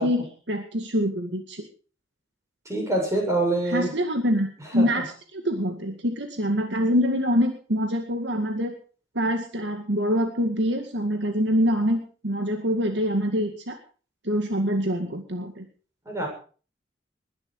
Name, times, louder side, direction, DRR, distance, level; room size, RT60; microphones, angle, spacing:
voice 1, 0.0-1.7 3.7-4.5 4.7-5.0 5.3-8.7 9.1-13.8 14.2-15.7, equal, 65° right, 5 dB, 2.1 m, -25 dB
voice 2, 2.6-3.9 4.7-5.0 16.0-16.3, right 2 dB, 15° right, 0 dB, 7.7 m, -25 dB
20.5 x 11.5 x 4.8 m, 0.40 s
head